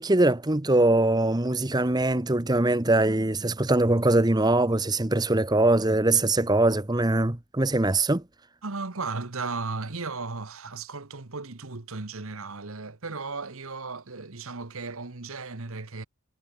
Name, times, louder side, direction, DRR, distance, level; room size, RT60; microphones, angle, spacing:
voice 1, 0.0-8.2, right 2 dB, 20° right, 1.0 m, -22 dB
voice 2, 8.6-16.0, right 4 dB, 70° right, 1.4 m, -35 dB
head